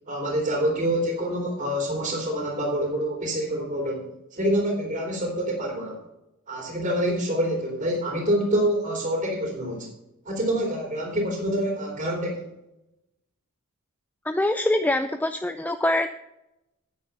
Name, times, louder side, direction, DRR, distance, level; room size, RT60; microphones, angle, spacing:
voice 1, 0.1-6.0 6.5-9.9 10.2-12.5, right 1 dB, 35° right, -1 dB, 3.1 m, -26 dB
voice 2, 14.2-16.1, left 1 dB, 10° left, 9 dB, 0.4 m, -24 dB
9.4 x 9.1 x 5.5 m, 0.89 s
head